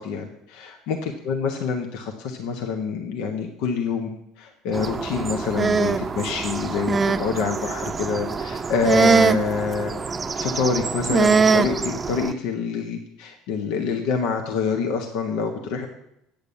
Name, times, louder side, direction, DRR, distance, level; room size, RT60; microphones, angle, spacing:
voice 1, 0.0-4.1 4.4-10.0 10.4-15.9, left 5 dB, 65° left, 3 dB, 1.3 m, -26 dB
sound 1, 4.7-12.3, right 5 dB, 25° right, 0.7 m, -23 dB
9.0 x 6.7 x 8.1 m, 0.80 s
hypercardioid pair, 70°, 0 cm